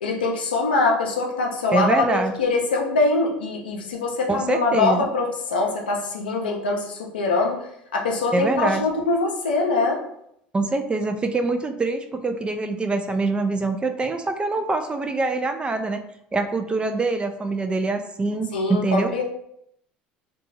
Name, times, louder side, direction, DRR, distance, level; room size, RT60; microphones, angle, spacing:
voice 1, 0.0-7.6 7.9-10.0 18.5-19.2, left 3 dB, 90° left, 0 dB, 0.5 m, -23 dB
voice 2, 1.7-2.3 4.3-5.1 8.3-8.8 10.5-16.0 16.3-19.1, right 3 dB, 20° right, 7 dB, 0.3 m, -24 dB
2.7 x 2.2 x 2.8 m, 0.73 s
hypercardioid pair, 75°, 5 cm